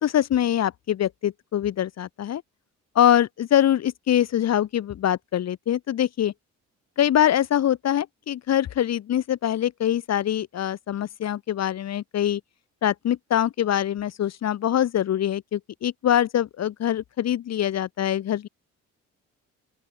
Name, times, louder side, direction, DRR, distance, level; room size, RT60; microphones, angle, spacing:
voice 1, 0.0-2.4 2.9-6.3 7.0-12.4 12.8-18.5, left 11 dB, 60° left, 1.2 m, -23 dB
open air
cardioid pair, 90°, 30 cm